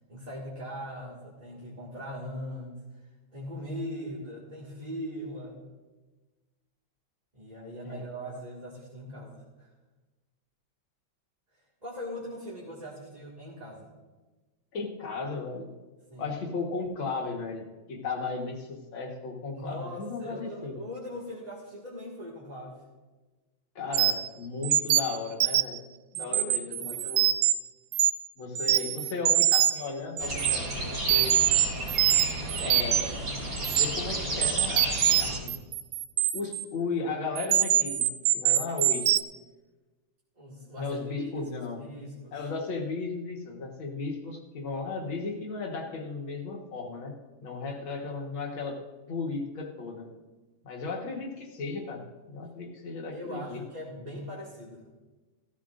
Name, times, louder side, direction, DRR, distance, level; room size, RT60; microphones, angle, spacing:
voice 1, 0.1-5.7 7.3-9.7 11.8-13.9 16.1-16.3 19.5-22.8 26.1-27.3 40.4-41.5 41.8-42.4 53.1-54.8, equal, 20° right, -7 dB, 1.9 m, -40 dB
voice 2, 14.7-15.7 16.2-20.8 23.8-25.8 26.1-27.3 28.4-31.4 32.6-33.1 33.7-35.6 36.3-38.1 38.3-39.2 40.8-41.9 42.3-48.8 49.1-50.1 50.6-53.6, left 4 dB, 75° left, 1 dB, 2.2 m, -35 dB
sound 1, 23.9-24.3 24.6-25.8 26.2-27.5 27.9-28.3 28.6-29.9 30.2-30.6 31.1-33.2 33.6-33.9 34.4-36.6 37.4-39.2, right 12 dB, 75° right, 0.9 m, -24 dB
sound 2, 30.2-35.4, right 1 dB, 45° right, 2.7 m, -33 dB
16.0 x 14.0 x 2.5 m, 1.2 s
omnidirectional pair, 2.2 m